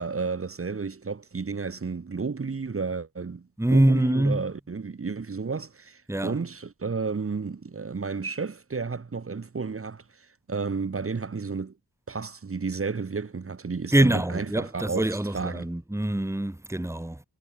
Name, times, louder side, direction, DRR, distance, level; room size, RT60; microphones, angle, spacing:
voice 1, 0.0-11.7 12.1-15.1 15.3-15.7, right 4 dB, 40° right, 3.6 m, -32 dB
voice 2, 3.6-4.5 6.1-6.4 13.9-17.2, right 1 dB, 10° right, 3.5 m, -24 dB
wide cardioid pair, 155°, 36 cm